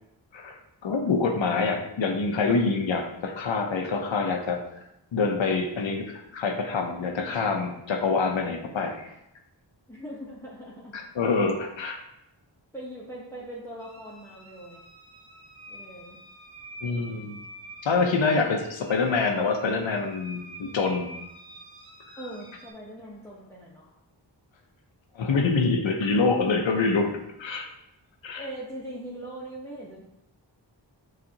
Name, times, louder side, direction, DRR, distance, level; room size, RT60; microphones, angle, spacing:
voice 1, 0.3-4.6 5.1-9.1 10.9-12.0 16.8-17.4 17.8-21.1 25.2-27.6 28.2-28.4, left 4 dB, 85° left, 3 dB, 0.7 m, -26 dB
voice 2, 9.9-11.0 12.7-14.8 15.7-16.2 22.2-23.9 28.3-30.0, right 1 dB, 5° left, -6 dB, 0.8 m, -40 dB
sound 1, 13.8-22.7, right 1 dB, 55° right, 0.9 m, -47 dB
6.4 x 2.4 x 2.8 m, 0.84 s
wide cardioid pair, 75°, 45 cm